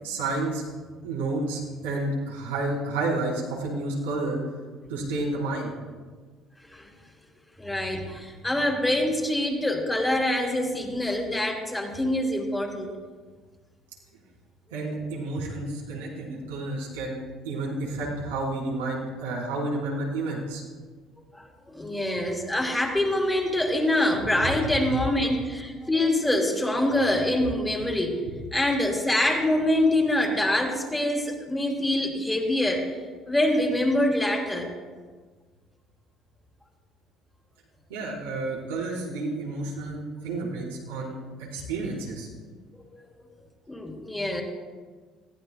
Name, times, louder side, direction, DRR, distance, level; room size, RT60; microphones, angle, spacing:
voice 1, 0.0-0.6 1.0-4.4 4.9-5.7 14.7-20.6 37.9-42.3, right 2 dB, 85° right, -5 dB, 4.5 m, -30 dB
voice 2, 7.6-12.9 21.3-28.2 28.5-32.9 33.3-34.7 43.7-44.4, left 1 dB, 10° left, 1 dB, 3.9 m, -25 dB
21.0 x 15.5 x 2.4 m, 1.4 s
hypercardioid pair, 60°, 0 cm